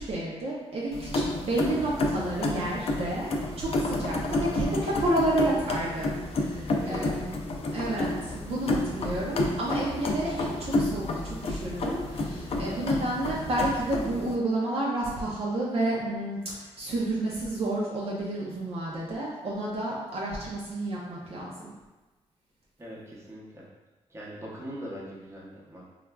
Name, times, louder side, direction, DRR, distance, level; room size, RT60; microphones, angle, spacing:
voice 1, 0.0-3.3 3.6-7.4 7.7-21.7, right 1 dB, 55° right, -5 dB, 0.5 m, -30 dB
sound 1, 0.9-14.4, left 2 dB, 55° left, 0.4 m, -30 dB
voice 2, 6.7-7.5 22.8-23.7 24.1-25.9, equal, 25° right, -5 dB, 0.8 m, -41 dB
3.2 x 2.3 x 2.2 m, 1.2 s
cardioid pair, 75°, 12 cm